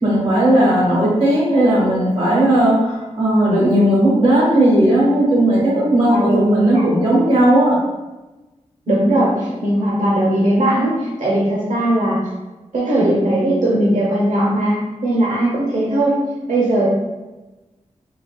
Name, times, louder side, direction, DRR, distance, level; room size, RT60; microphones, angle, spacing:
voice 1, 0.0-7.8, right 1 dB, 45° right, -6 dB, 1.3 m, -15 dB
voice 2, 8.9-12.2 12.7-14.8 15.0-16.2 16.5-16.9, right 1 dB, 85° right, -6 dB, 0.7 m, -18 dB
3.9 x 2.2 x 2.2 m, 1.1 s
wide cardioid pair, 110°, 13 cm